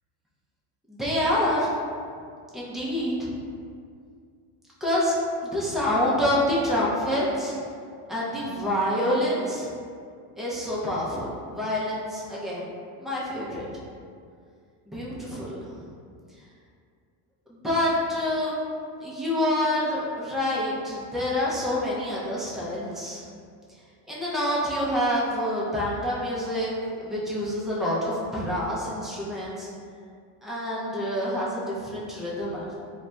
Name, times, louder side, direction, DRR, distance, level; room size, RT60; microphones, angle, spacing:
voice 1, 0.9-1.7 2.5-3.3 4.8-5.1 5.4-7.6 8.1-9.7 10.4-12.7 13.0-13.7 14.9-15.7 17.5-18.6 19.0-23.2 24.1-29.7 30.4-32.7, left 1 dB, ahead, -7 dB, 0.4 m, -27 dB
2.3 x 2.2 x 3.9 m, 2.2 s
cardioid pair, 135°, 41 cm